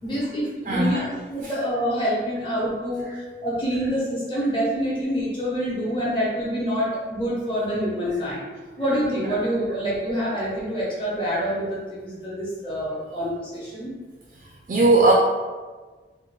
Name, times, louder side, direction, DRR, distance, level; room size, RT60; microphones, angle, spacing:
voice 1, 0.0-1.0 1.3-3.1 3.4-8.5 8.8-13.9, equal, 30° left, -7 dB, 0.9 m, -26 dB
voice 2, 0.7-1.1 1.4-1.5 14.7-15.1, right 2 dB, 45° right, -2 dB, 0.3 m, -18 dB
3.6 x 2.2 x 3.1 m, 1.4 s
head